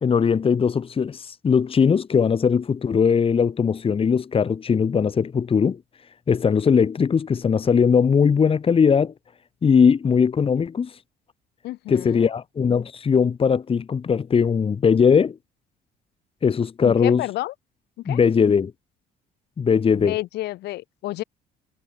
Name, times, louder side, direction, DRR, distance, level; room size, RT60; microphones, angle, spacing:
voice 1, 0.0-5.8 6.3-9.1 9.6-10.9 11.9-15.4 16.4-17.2 18.1-18.7 19.6-20.2, left 6 dB, 35° left, 2.2 m, -19 dB
voice 2, 11.6-12.3 16.8-17.5 18.0-18.2 20.0-21.2, left 16 dB, 80° left, 2.6 m, -30 dB
cardioid pair, 110°, 17 cm